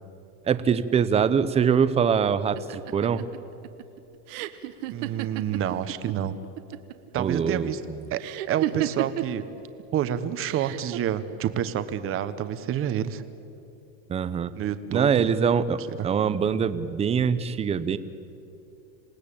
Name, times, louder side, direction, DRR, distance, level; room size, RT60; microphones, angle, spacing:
voice 1, 0.4-3.3 7.2-7.7 14.1-14.5 14.9-18.0, right 7 dB, 15° right, 13 dB, 0.6 m, -23 dB
sound 1, 2.6-6.1 6.4-7.1 8.2-9.4 10.4-11.0, right 14 dB, 65° right, 1.3 m, -32 dB
voice 2, 4.9-6.3 7.1-7.8 8.1-8.2 8.5-9.4 9.9-13.2 14.6-15.1, right 10 dB, 30° right, 11 dB, 1.1 m, -28 dB
27.5 x 18.0 x 8.7 m, 2.8 s
supercardioid pair, 155°, 41 cm